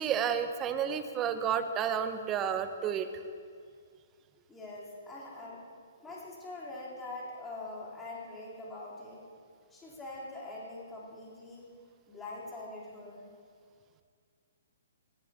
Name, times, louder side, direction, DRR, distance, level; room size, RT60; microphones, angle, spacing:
voice 1, 0.0-3.2, right 8 dB, 25° right, 9 dB, 0.8 m, -31 dB
voice 2, 4.5-5.6 6.0-9.2 9.7-11.7 12.1-13.3, left 2 dB, 15° left, -7 dB, 3.8 m, -43 dB
19.0 x 12.0 x 2.9 m, 2.1 s
hypercardioid pair, 130°, 0 cm